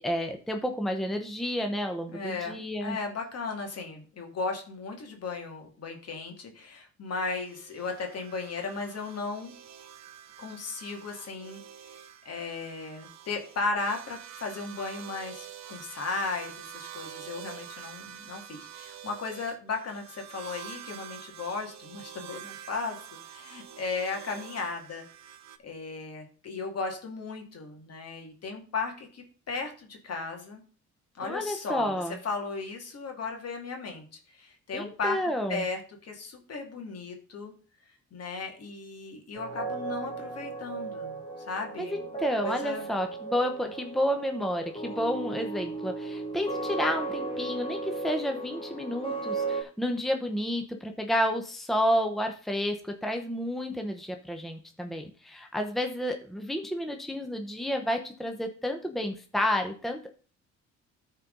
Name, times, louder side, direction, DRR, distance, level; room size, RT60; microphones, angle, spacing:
voice 1, 0.0-3.0 31.2-32.2 34.7-35.7 41.8-60.1, equal, ahead, 4 dB, 0.9 m, -30 dB
voice 2, 2.1-9.5 10.4-25.1 25.6-30.6 31.1-31.9 32.2-35.2 35.5-37.5 38.1-41.2 41.5-42.1 42.4-42.9, left 4 dB, 55° left, 3 dB, 2.3 m, -36 dB
sound 1, 7.4-25.6, right 10 dB, 65° right, 0.8 m, -46 dB
sound 2, 39.3-49.6, right 3 dB, 15° left, 2.4 m, -35 dB
13.0 x 4.5 x 3.9 m, 0.41 s
cardioid pair, 90°, 30 cm